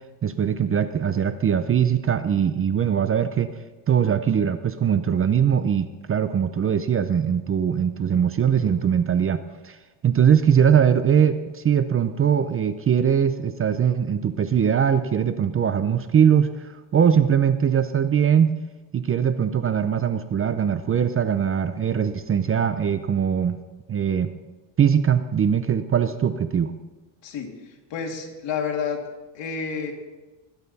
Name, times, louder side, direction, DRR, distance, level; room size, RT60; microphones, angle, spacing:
voice 1, 0.2-3.5 3.9-9.8 10.0-18.6 18.9-23.6 23.9-24.3 24.8-26.7, right 8 dB, 30° right, 11 dB, 0.5 m, -21 dB
voice 2, 27.2-29.0 29.3-29.9, left 6 dB, 65° left, 2 dB, 2.5 m, -30 dB
20.0 x 9.0 x 4.1 m, 1.2 s
cardioid pair, 125°, 47 cm